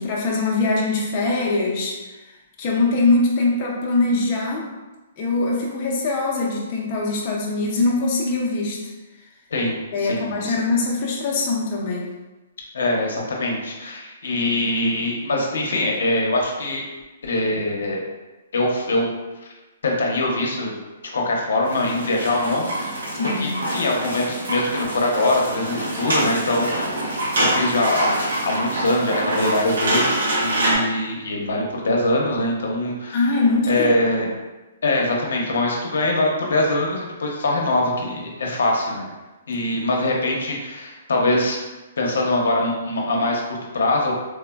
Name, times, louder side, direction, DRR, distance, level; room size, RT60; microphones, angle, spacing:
voice 1, 0.0-2.3 2.6-4.7 5.2-8.8 9.9-12.1 23.1-23.6 33.1-33.9 34.2-34.3, left 3 dB, 30° left, -3 dB, 0.4 m, -22 dB
voice 2, 9.5-10.5 12.7-16.8 17.2-18.0 18.5-19.1 19.8-20.7 21.1-22.9 23.2-33.3 33.7-34.3 34.8-39.1 39.5-41.6 42.0-44.1, left 1 dB, 85° left, -1 dB, 0.6 m, -23 dB
sound 1, 21.6-30.8, right 1 dB, 90° right, 0.8 m, -25 dB
3.2 x 2.0 x 2.2 m, 1.1 s
hypercardioid pair, 160°, 0 cm